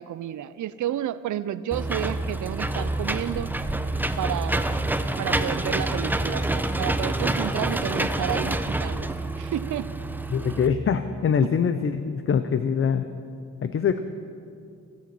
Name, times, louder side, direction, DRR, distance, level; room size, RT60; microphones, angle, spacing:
voice 1, 0.0-3.5 4.2-4.8 5.2-9.9 11.4-11.5, right 11 dB, 70° right, 16 dB, 0.5 m, -31 dB
Engine / Mechanisms, 1.7-10.7, right 2 dB, 5° right, 0.6 m, -27 dB
voice 2, 10.3-13.1 13.6-14.0, left 7 dB, 45° left, 10 dB, 0.6 m, -23 dB
17.5 x 8.5 x 7.6 m, 2.4 s
cardioid pair, 105°, 31 cm